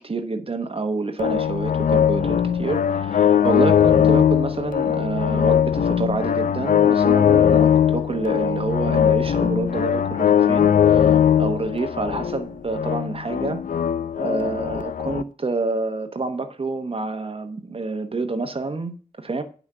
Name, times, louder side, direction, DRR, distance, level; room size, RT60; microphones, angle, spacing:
voice 1, 0.0-13.6 14.2-19.4, right 3 dB, 35° right, 1.1 m, -28 dB
sound 1, 1.2-15.2, left 9 dB, 60° left, 0.6 m, -20 dB
9.6 x 6.1 x 6.7 m
wide cardioid pair, 115°, 16 cm